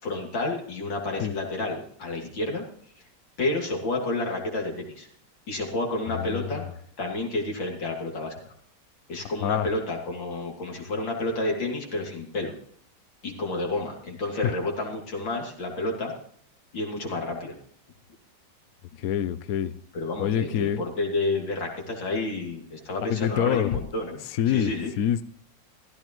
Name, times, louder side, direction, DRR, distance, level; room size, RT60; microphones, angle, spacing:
voice 1, 0.0-2.6 3.4-5.1 5.5-6.6 7.0-8.5 9.1-12.5 13.2-16.1 16.7-17.6 19.9-24.2 24.5-24.9, left 2 dB, 85° left, -1 dB, 3.5 m, -30 dB
voice 2, 6.1-6.5 9.4-9.7 19.0-19.7 20.2-20.8 23.1-23.7 24.3-24.7 25.0-25.2, left 10 dB, 65° left, 14 dB, 0.9 m, -26 dB
16.0 x 14.0 x 3.1 m, 0.62 s
omnidirectional pair, 2.0 m